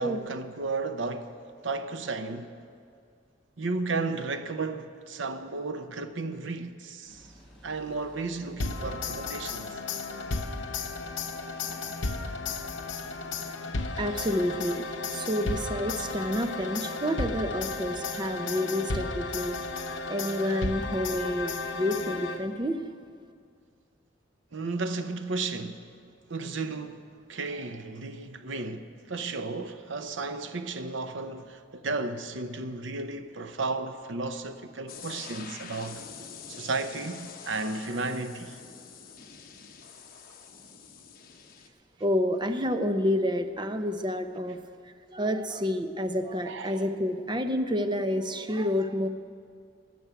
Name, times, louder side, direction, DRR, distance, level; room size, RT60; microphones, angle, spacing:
voice 1, 0.0-2.5 3.6-7.3 7.6-9.8 24.5-25.9 26.3-36.0 36.5-38.6 46.4-46.9, right 3 dB, 85° right, 0.8 m, -34 dB
sound 1, 7.1-16.8, equal, 5° left, 3.4 m, -54 dB
sound 2, 8.6-22.7, left 3 dB, 75° left, 0.9 m, -34 dB
voice 2, 14.0-14.8 15.1-19.6 20.1-22.8 42.0-44.6 44.8-49.1, equal, 25° right, 0.7 m, -29 dB
sound 3, 34.9-41.7, left 6 dB, 50° left, 1.2 m, -46 dB
16.0 x 6.2 x 10.0 m
head